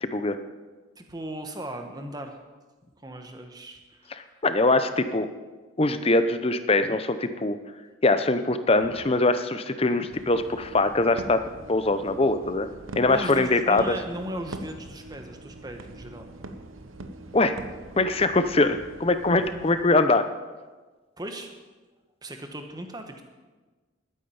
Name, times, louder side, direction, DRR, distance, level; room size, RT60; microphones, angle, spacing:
voice 1, 0.0-0.4 4.4-5.3 5.8-7.6 8.0-11.4 11.7-12.7 13.0-13.9 17.3-17.6 18.0-20.3, left 2 dB, 30° left, 10 dB, 0.7 m, -22 dB
voice 2, 1.0-2.4 3.0-4.4 13.1-16.3 21.2-21.5 22.2-23.2, right 1 dB, 20° right, 4 dB, 1.3 m, -37 dB
sound 1, 10.1-19.9, right 2 dB, 85° right, 1.0 m, -42 dB
12.0 x 9.4 x 7.1 m, 1.3 s
head